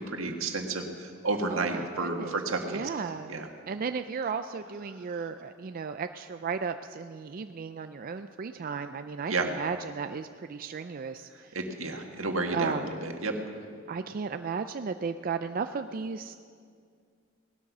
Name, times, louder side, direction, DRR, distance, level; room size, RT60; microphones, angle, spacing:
voice 1, 0.0-2.9 3.3-3.5 9.3-9.5 11.5-13.3, right 3 dB, 85° right, 3 dB, 1.7 m, -31 dB
voice 2, 1.5-2.3 2.7-11.6 12.5-12.9 13.9-16.3, right 5 dB, 45° right, 8 dB, 0.4 m, -35 dB
18.5 x 12.5 x 6.1 m, 2.2 s
head